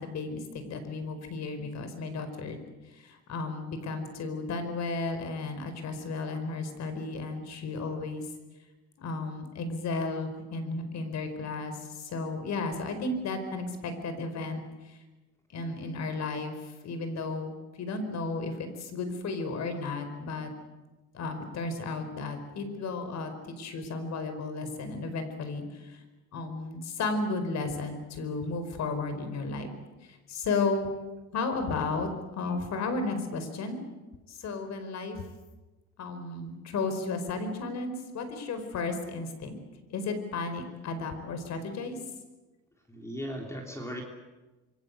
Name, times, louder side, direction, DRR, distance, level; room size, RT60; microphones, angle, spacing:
voice 1, 0.0-8.3 9.0-15.0 15.5-20.5 21.1-26.0 26.3-29.7 30.0-30.9 31.3-33.8 34.3-35.2 36.0-39.6 39.9-42.0, left 3 dB, 55° left, 8 dB, 4.9 m, -34 dB
voice 2, 42.9-44.0, equal, 10° left, 1 dB, 3.3 m, -37 dB
27.0 x 23.5 x 8.2 m, 1.2 s
cardioid pair, 145°, 32 cm